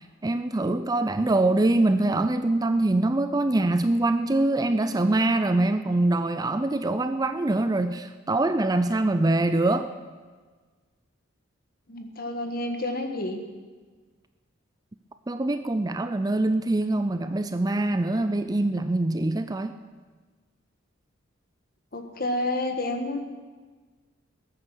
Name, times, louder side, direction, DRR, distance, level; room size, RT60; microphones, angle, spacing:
voice 1, 0.2-9.9 15.3-19.7, right 2 dB, 20° right, 10 dB, 0.5 m, -24 dB
voice 2, 11.9-13.4 21.9-23.2, left 1 dB, 45° left, 6 dB, 1.6 m, -29 dB
20.5 x 9.0 x 6.3 m, 1.4 s
head